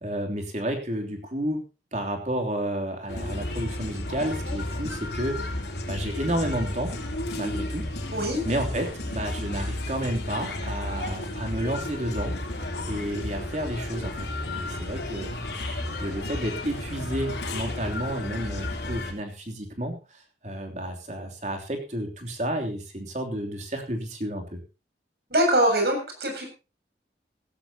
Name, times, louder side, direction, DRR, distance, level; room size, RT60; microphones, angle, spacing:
voice 1, 0.0-1.6 1.9-5.6 5.9-6.9 7.3-7.9 8.4-12.4 12.8-15.3 16.0-24.6, right 1 dB, 40° right, 3 dB, 3.1 m, -31 dB
sound 1, 3.1-19.1, left 1 dB, 75° left, 3.5 m, -33 dB
voice 2, 8.1-8.4 25.3-26.5, right 1 dB, 65° right, 3 dB, 7.3 m, -23 dB
16.5 x 15.0 x 2.9 m, 0.30 s
head